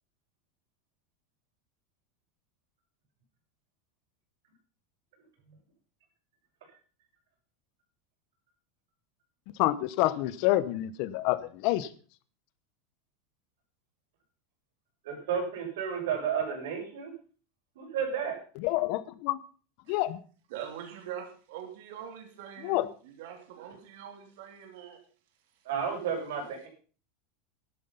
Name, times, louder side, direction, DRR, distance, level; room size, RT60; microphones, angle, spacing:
voice 1, 9.6-11.9 18.6-19.4 19.9-20.2 22.6-22.9, left 16 dB, 50° left, 0.9 m, -27 dB
voice 2, 15.0-17.1 17.7-18.4 25.6-26.7, right 7 dB, 80° right, 6.7 m, -32 dB
voice 3, 20.5-25.0, right 9 dB, 65° right, 3.1 m, -43 dB
12.5 x 12.0 x 5.6 m
supercardioid pair, 170°, 0 cm